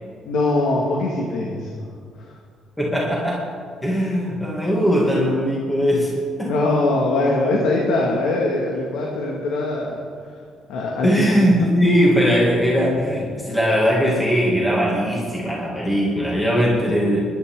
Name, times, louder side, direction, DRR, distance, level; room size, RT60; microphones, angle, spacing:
voice 1, 0.3-1.9 2.2-2.3 6.4-10.1 10.7-11.1, left 2 dB, 90° left, -2 dB, 2.1 m, -22 dB
voice 2, 2.8-3.5 3.8-6.5 11.0-17.2, equal, 5° left, -4 dB, 2.5 m, -19 dB
25.5 x 11.5 x 3.9 m, 2.1 s
cardioid pair, 125°, 0 cm